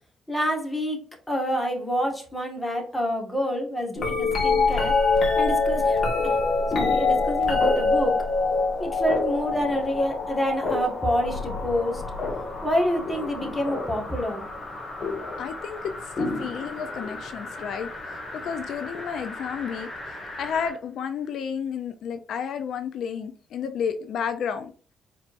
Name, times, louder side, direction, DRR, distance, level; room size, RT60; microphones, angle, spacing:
voice 1, 0.3-1.0 1.3-4.9 5.4-6.0 6.8-8.2 8.8-12.0 12.6-14.4, equal, 10° left, 1 dB, 1.7 m, -27 dB
sound 1, 4.0-14.1 15.0-15.4 16.2-17.2 18.9-19.0, left 4 dB, 50° left, 1.6 m, -25 dB
sound 2, 5.8-20.8 21.2-21.3, left 2 dB, 30° left, 2.1 m, -38 dB
voice 2, 15.4-24.7, left 7 dB, 70° left, 9 dB, 0.5 m, -32 dB
4.6 x 4.3 x 2.6 m, 0.39 s
cardioid pair, 90°, 0 cm